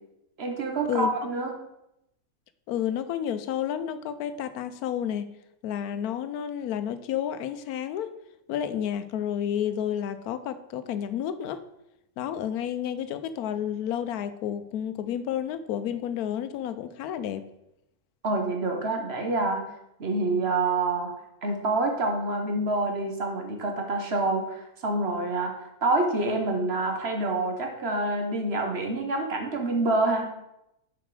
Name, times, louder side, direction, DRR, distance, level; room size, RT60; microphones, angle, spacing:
voice 1, 0.4-1.5 18.2-19.6 20.0-21.1 21.4-30.4, right 2 dB, 45° right, 3 dB, 1.3 m, -27 dB
voice 2, 2.7-5.3 5.6-8.2 8.5-11.6 12.2-17.5, left 9 dB, 90° left, 12 dB, 1.1 m, -30 dB
7.1 x 5.0 x 4.8 m, 0.85 s
omnidirectional pair, 1.5 m